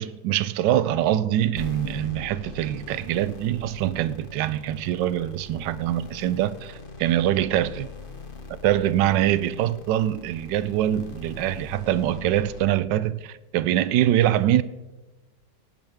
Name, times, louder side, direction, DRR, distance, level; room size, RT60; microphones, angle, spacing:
voice 1, 0.0-7.9 8.5-14.6, right 12 dB, 85° right, 1.2 m, -24 dB
sound 1, 1.6-12.7, left 4 dB, 35° left, 1.3 m, -42 dB
23.0 x 9.2 x 3.5 m
omnidirectional pair, 1.9 m